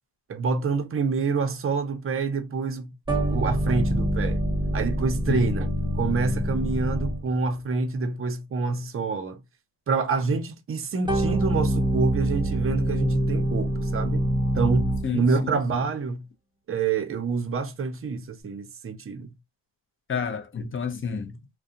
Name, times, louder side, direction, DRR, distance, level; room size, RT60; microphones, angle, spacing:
voice 1, 0.3-2.9 3.3-4.4 4.7-5.7 6.0-9.4 9.9-14.3 14.5-16.2 16.7-19.3, right 4 dB, 30° right, 0.6 m, -27 dB
sound 1, 3.1-7.5 11.1-15.2, right 1 dB, 10° right, 1.0 m, -25 dB
voice 2, 15.0-15.6 20.1-21.4, left 6 dB, 30° left, 0.6 m, -30 dB
2.4 x 2.2 x 2.7 m
supercardioid pair, 60°, 44 cm